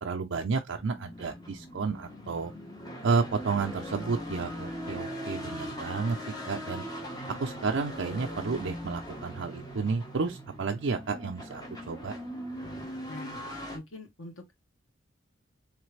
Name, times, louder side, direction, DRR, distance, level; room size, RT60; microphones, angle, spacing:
voice 1, 0.0-2.5 3.0-6.2 6.5-6.8 7.4-12.1, right 4 dB, 70° right, 0.5 m, -31 dB
sound 1, 0.7-13.8, equal, 20° left, 1.2 m, -40 dB
voice 2, 7.1-7.7 13.1-13.4 13.7-14.6, left 2 dB, 90° left, 1.3 m, -45 dB
3.9 x 3.3 x 3.2 m
head